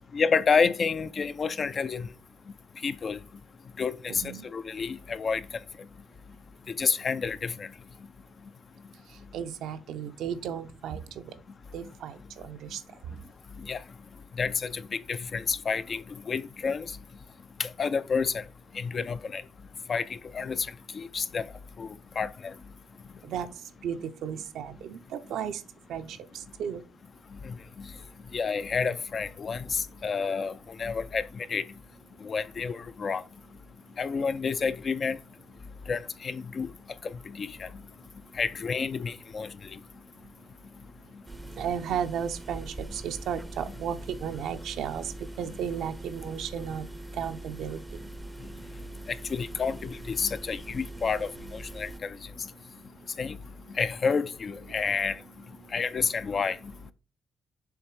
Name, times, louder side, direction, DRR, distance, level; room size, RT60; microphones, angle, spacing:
voice 1, 0.1-2.1 2.8-3.2 3.8-5.4 6.8-7.7 13.6-13.8 14.4-16.9 17.6-18.4 18.7-19.4 19.9-20.7 20.9-21.4 21.8-22.5 27.4-27.9 28.3-31.6 32.2-33.2 34.0-35.2 35.9-36.7 37.0-37.7 38.4-39.8 49.3-52.2 53.2-53.4 53.7-55.1 55.7-56.6, left 5 dB, 45° left, 0.5 m, -29 dB
voice 2, 4.1-4.5 9.3-11.3 11.7-12.8 23.2-23.5 23.8-25.6 25.9-26.8 41.6-46.9 47.1-47.8, right 8 dB, 80° right, 0.7 m, -34 dB
sound 1, 41.3-52.0, right 2 dB, 15° right, 0.6 m, -42 dB
7.2 x 3.2 x 4.7 m
cardioid pair, 90°, 0 cm